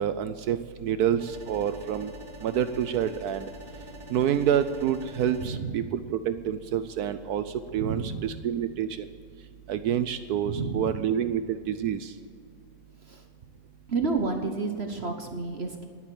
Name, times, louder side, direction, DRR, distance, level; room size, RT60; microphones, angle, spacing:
voice 1, 0.0-2.1 2.4-3.5 4.1-7.4 7.7-9.1 9.7-12.1, right 9 dB, 75° right, 12 dB, 0.9 m, -28 dB
sound 1, 1.2-5.5, equal, 15° right, 3.1 m, -45 dB
voice 2, 5.4-5.9 7.7-8.4 10.4-11.0 13.1-13.2 13.9-15.9, right 4 dB, 45° right, 5 dB, 1.0 m, -31 dB
11.5 x 10.5 x 7.5 m, 2.2 s
omnidirectional pair, 2.1 m